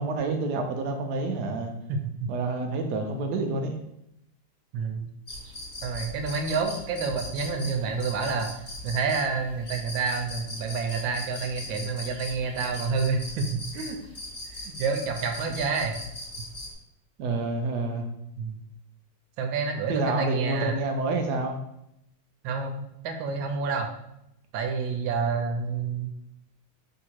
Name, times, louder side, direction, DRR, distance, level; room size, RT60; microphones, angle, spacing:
voice 1, 0.0-1.7 2.3-3.7 17.2-18.1 19.9-21.5, right 3 dB, 75° right, 4 dB, 1.0 m, -28 dB
voice 2, 1.9-2.3 4.7-5.1 5.8-8.5 8.8-14.0 14.6-15.9 18.4-18.6 19.4-20.8 22.4-23.9 24.5-26.1, right 4 dB, 90° right, 5 dB, 1.4 m, -29 dB
sound 1, 5.3-16.7, left 1 dB, 30° left, 1.6 m, -40 dB
3.7 x 2.8 x 4.4 m, 0.80 s
omnidirectional pair, 2.1 m